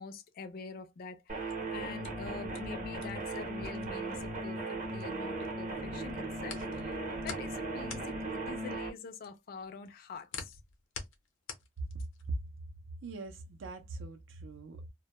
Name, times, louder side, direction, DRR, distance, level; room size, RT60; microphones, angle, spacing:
voice 1, 0.0-8.2 8.5-10.6, left 5 dB, 50° left, 0.4 m, -45 dB
sound 1, 1.3-5.5 5.8-12.4, left 5 dB, 90° left, 0.7 m, -47 dB
sound 2, 1.3-8.9, right 2 dB, 40° right, 0.7 m, -37 dB
voice 2, 11.9-12.4 13.0-14.9, right 3 dB, 75° right, 0.5 m, -41 dB
2.1 x 2.1 x 2.8 m
head